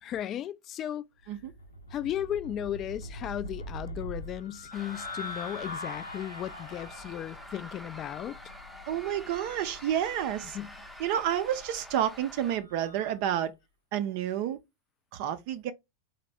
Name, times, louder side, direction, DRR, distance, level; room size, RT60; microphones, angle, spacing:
voice 1, 0.0-1.1 1.9-8.4 10.5-10.7, left 11 dB, 30° left, 0.3 m, -35 dB
sound 1, 1.3-13.2, left 1 dB, 80° left, 0.9 m, -43 dB
sound 2, 4.7-12.6, equal, ahead, 0.7 m, -47 dB
voice 2, 8.9-10.6 11.0-13.5 13.9-14.6 15.1-15.7, right 10 dB, 45° right, 0.4 m, -30 dB
4.0 x 2.1 x 3.4 m
figure-of-eight pair, 90°, 0 cm